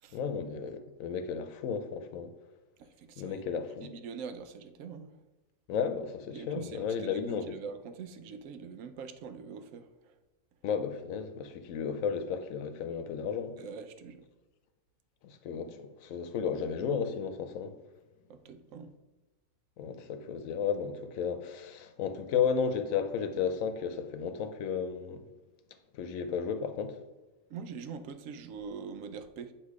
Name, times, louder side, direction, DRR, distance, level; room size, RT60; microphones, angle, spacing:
voice 1, 0.1-2.3 3.2-3.9 5.7-7.5 10.6-13.6 15.2-17.7 19.8-25.2 25.9-27.0, left 6 dB, 90° left, 1.1 m, -33 dB
voice 2, 2.8-3.4 3.8-5.2 6.3-10.1 13.6-14.3 18.3-18.9 27.5-29.5, right 6 dB, 80° right, 1.0 m, -44 dB
8.3 x 2.9 x 4.7 m
omnidirectional pair, 1.4 m